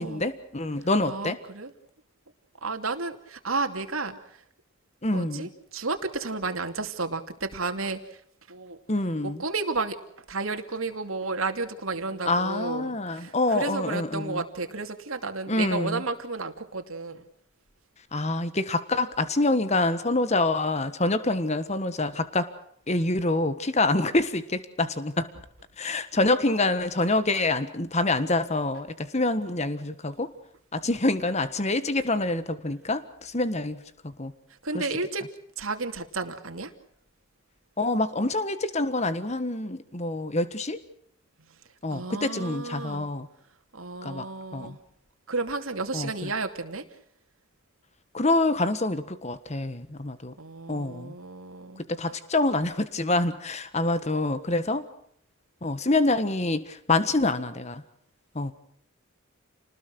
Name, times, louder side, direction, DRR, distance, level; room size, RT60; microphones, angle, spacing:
voice 1, 0.0-1.4 5.0-5.5 8.9-9.4 12.3-14.4 15.5-16.0 18.1-22.5 22.9-25.3 25.8-30.3 30.7-34.3 34.7-34.8 37.8-40.8 41.8-43.3 44.0-44.2 44.5-44.8 45.9-46.3 48.1-50.3 50.7-51.1 52.0-54.8 55.6-57.8 58.3-58.5, left 2 dB, 30° left, 12 dB, 1.5 m, -26 dB
voice 2, 1.0-1.7 2.6-4.1 5.1-8.2 8.5-8.8 9.2-10.0 10.3-17.2 34.6-35.2 35.6-36.7 41.9-43.1 43.7-44.8 45.3-46.8 50.4-51.8, right 3 dB, 80° right, 6 dB, 2.8 m, -32 dB
29.5 x 20.0 x 6.3 m, 0.67 s
head